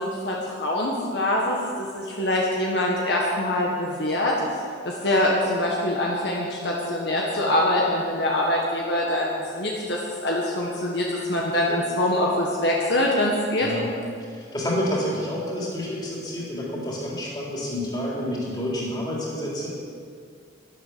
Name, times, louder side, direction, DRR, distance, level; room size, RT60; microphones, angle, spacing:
voice 1, 0.0-4.3 4.9-13.7, left 1 dB, 60° left, -3 dB, 1.7 m, -24 dB
voice 2, 14.3-19.7, left 1 dB, 20° left, -5 dB, 3.6 m, -29 dB
12.5 x 11.5 x 7.1 m, 2.2 s
head